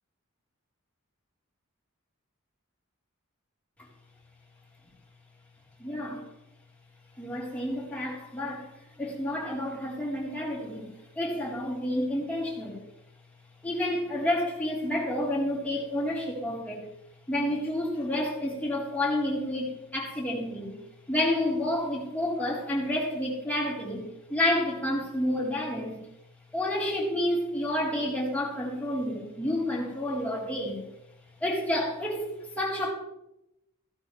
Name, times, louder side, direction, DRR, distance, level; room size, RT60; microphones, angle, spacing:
voice 1, 5.8-6.2 7.2-8.7 9.0-10.8 11.1-12.8 13.6-16.8 17.3-20.8 21.1-26.0 26.5-30.8 31.4-32.9, left 1 dB, 5° left, -4 dB, 3.7 m, -29 dB
15.5 x 13.5 x 3.3 m, 0.86 s
head